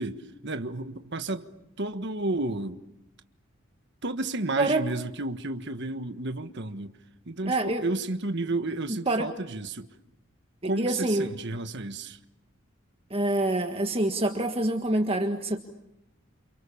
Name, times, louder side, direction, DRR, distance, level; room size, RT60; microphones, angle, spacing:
voice 1, 0.0-1.5 1.8-2.8 4.0-6.9 7.2-9.9 10.6-12.2, right 2 dB, 55° right, 1.4 m, -32 dB
voice 2, 7.4-7.8 9.1-9.3 10.6-11.3 13.1-15.6, right 1 dB, 25° right, 1.6 m, -26 dB
29.5 x 28.5 x 7.1 m
head